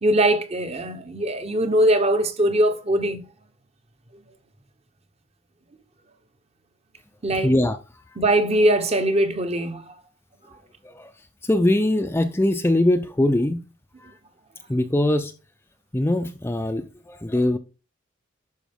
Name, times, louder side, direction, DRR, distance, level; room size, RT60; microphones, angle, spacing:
voice 1, 0.0-3.2 7.2-7.5 8.2-9.9, right 1 dB, 30° right, 0.9 m, -21 dB
voice 2, 7.4-7.8 8.1-8.2 10.8-13.6 14.0-14.1 14.7-15.3 15.9-17.6, left 1 dB, 10° left, 0.5 m, -22 dB
11.0 x 4.7 x 3.5 m
head